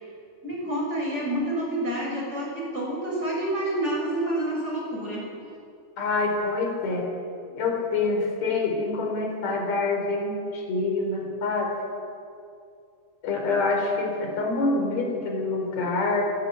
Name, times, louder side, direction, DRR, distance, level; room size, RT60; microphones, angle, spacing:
voice 1, 0.4-5.3 7.5-7.6, right 1 dB, 15° right, -3 dB, 6.4 m, -28 dB
voice 2, 6.0-7.1 7.6-11.7 13.2-16.2, left 3 dB, 35° left, 1 dB, 4.5 m, -26 dB
29.0 x 12.5 x 9.5 m, 2.5 s
omnidirectional pair, 5.8 m